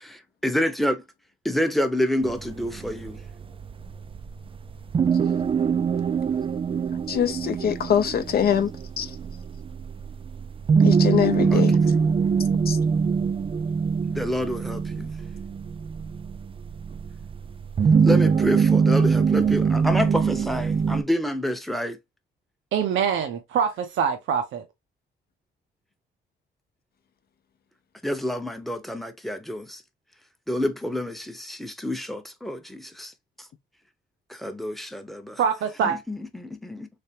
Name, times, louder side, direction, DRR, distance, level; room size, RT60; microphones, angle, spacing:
voice 1, 0.0-1.0 1.4-3.2 11.5-11.6 14.0-15.1 18.0-22.0 28.0-29.8 30.5-33.1 34.3-35.4 35.8-36.9, left 1 dB, ahead, 0.8 m, -28 dB
sound 1, 2.2-21.0, right 6 dB, 25° right, 0.3 m, -23 dB
voice 2, 7.1-8.7 9.0-9.2 10.8-11.8 12.7-12.8, left 8 dB, 50° left, 0.6 m, -23 dB
voice 3, 22.7-24.6 35.4-36.0, right 7 dB, 75° right, 0.7 m, -24 dB
3.4 x 3.2 x 2.8 m
cardioid pair, 90°, 20 cm